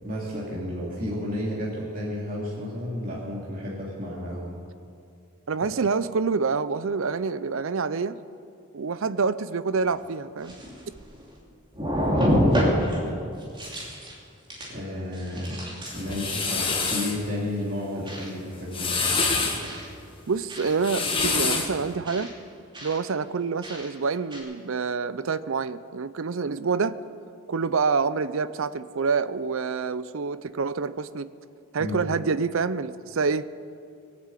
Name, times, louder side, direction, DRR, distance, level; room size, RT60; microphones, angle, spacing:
voice 1, 0.0-4.5 12.0-13.3 14.7-15.6 15.9-19.0 31.8-32.0, left 1 dB, 40° right, -6 dB, 2.5 m, -32 dB
voice 2, 5.5-8.2 8.7-10.5 20.3-22.3 22.8-27.0 27.5-31.3 31.7-33.5, right 5 dB, 65° right, 15 dB, 0.5 m, -27 dB
sound 1, 9.8-9.9 10.4-11.4 11.7-13.0 13.4-14.1 14.5-14.8 15.1-16.1 16.7-17.0 18.1-18.3 18.9-19.2 19.6-19.9 20.5-20.7 21.2-21.4 22.1-22.3 22.7-23.0 23.6-23.9 24.3-24.4, equal, 20° right, 2.9 m, -27 dB
sound 2, 15.9-17.2 18.5-19.6 20.7-21.8, left 4 dB, 25° left, 1.7 m, -26 dB
21.0 x 7.7 x 8.3 m, 2.4 s
head